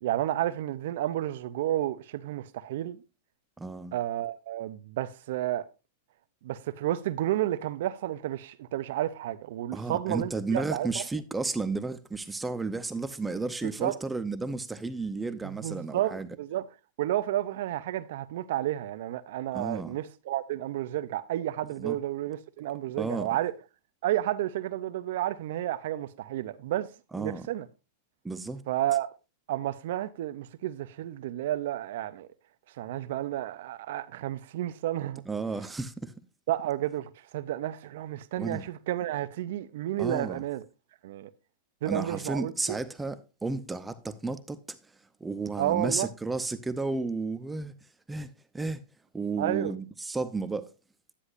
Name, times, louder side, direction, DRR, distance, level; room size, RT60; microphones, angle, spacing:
voice 1, 0.0-3.0 3.9-5.7 6.4-11.0 13.8-14.0 15.6-16.7 17.0-23.5 24.0-26.9 27.2-27.7 28.7-29.1 29.5-32.3 32.8-35.2 36.5-40.6 41.0-41.3 41.8-42.8 45.6-46.1 49.4-49.7, right 13 dB, 65° right, 0.6 m, -31 dB
voice 2, 3.6-3.9 9.7-16.3 19.5-20.0 21.8-22.0 23.0-23.3 27.1-27.5 28.2-28.6 35.3-36.1 38.4-38.6 40.0-40.4 41.9-44.8 45.2-47.7 48.1-48.8 49.1-50.7, right 3 dB, 10° right, 0.7 m, -33 dB
9.9 x 9.7 x 2.5 m
hypercardioid pair, 130°, 0 cm